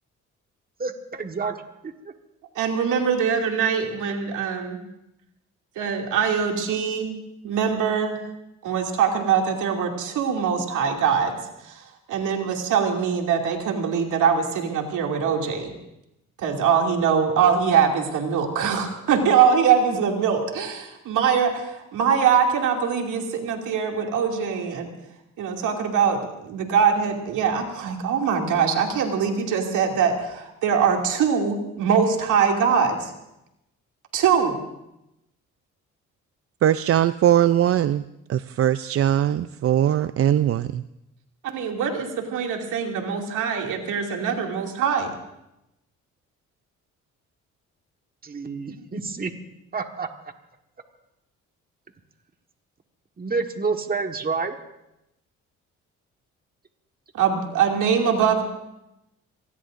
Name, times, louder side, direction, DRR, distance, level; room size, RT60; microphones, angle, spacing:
voice 1, 0.8-1.5 1.8-2.1 48.2-49.3 49.7-50.1 53.2-54.5, right 4 dB, 30° right, 5 dB, 1.5 m, -28 dB
voice 2, 2.5-4.8 5.8-7.1 7.4-8.2 8.6-11.4 11.6-15.7 16.4-24.9 25.4-33.1 34.1-34.6 41.4-45.1 57.1-58.4, right 7 dB, 80° right, 1 dB, 2.6 m, -23 dB
voice 3, 36.6-38.0 38.3-40.8, right 11 dB, 50° right, 13 dB, 0.5 m, -20 dB
27.0 x 19.5 x 2.6 m, 0.87 s
cardioid pair, 90°, 30 cm